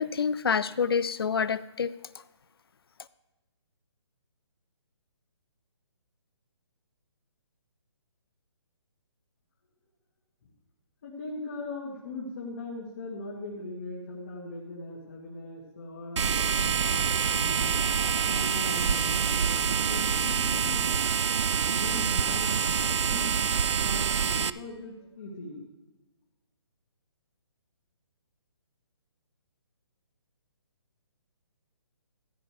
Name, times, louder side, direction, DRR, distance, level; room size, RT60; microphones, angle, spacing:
voice 1, 0.0-1.9, left 6 dB, 55° left, 17 dB, 0.5 m, -27 dB
voice 2, 11.0-17.8 18.3-20.9 21.7-22.5 23.1-23.4 23.8-25.6, left 2 dB, 30° left, -3 dB, 1.9 m, -40 dB
sound 1, 16.2-24.5, right 6 dB, 70° right, 0.5 m, -26 dB
14.0 x 11.0 x 3.3 m, 1.1 s
hypercardioid pair, 175°, 15 cm